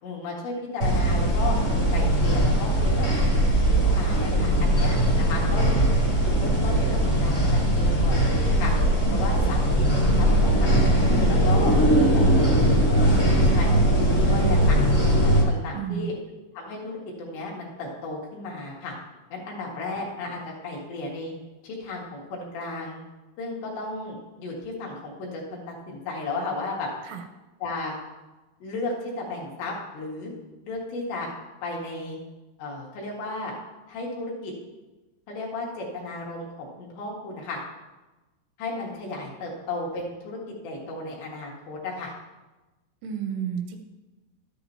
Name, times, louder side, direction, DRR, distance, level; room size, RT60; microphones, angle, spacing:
voice 1, 0.0-1.6 1.9-3.1 3.7-5.8 6.2-8.7 9.1-11.7 12.1-12.6 13.0-14.8 15.2-16.1 16.5-19.0 19.3-21.3 21.6-23.0 23.4-26.9 27.6-27.9 28.6-30.3 30.6-31.3 31.6-32.2 32.6-33.5 33.9-34.5 35.3-37.6 38.6-42.1, left 2 dB, 70° left, -3 dB, 3.8 m, -34 dB
sound 1, 0.8-15.4, right 1 dB, 40° left, 1.1 m, -20 dB
voice 2, 15.7-16.2 27.1-27.2 43.0-43.8, right 8 dB, 85° right, 5 dB, 3.3 m, -31 dB
12.5 x 10.0 x 2.9 m, 1.1 s
omnidirectional pair, 5.6 m